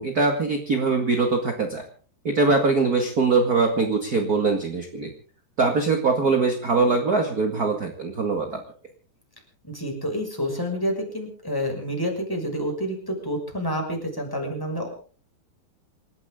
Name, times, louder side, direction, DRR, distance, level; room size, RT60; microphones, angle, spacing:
voice 1, 0.0-1.8 2.2-5.1 5.6-8.6, right 3 dB, 35° right, 4 dB, 1.6 m, -22 dB
voice 2, 9.6-14.9, equal, 5° left, 1 dB, 5.6 m, -28 dB
28.0 x 13.5 x 3.8 m, 0.41 s
omnidirectional pair, 4.6 m